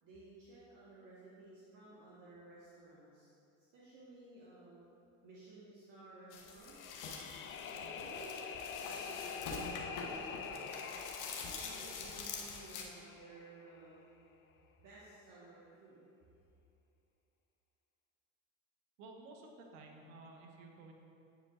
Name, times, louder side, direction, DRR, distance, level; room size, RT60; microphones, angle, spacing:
voice 1, 0.0-3.3 3.7-4.8 5.2-6.8 7.5-8.4 8.7-10.8 11.5-14.2 14.8-16.0, right 2 dB, 50° right, -8 dB, 1.3 m, -56 dB
sound 1, 6.3-12.8, left 4 dB, 50° left, 0.9 m, -45 dB
sound 2, 6.6-13.7, left 6 dB, 30° left, 0.4 m, -46 dB
voice 2, 19.0-20.9, right 3 dB, 75° right, 2 dB, 0.9 m, -54 dB
9.1 x 4.8 x 2.4 m, 2.6 s
hypercardioid pair, 85°, 39 cm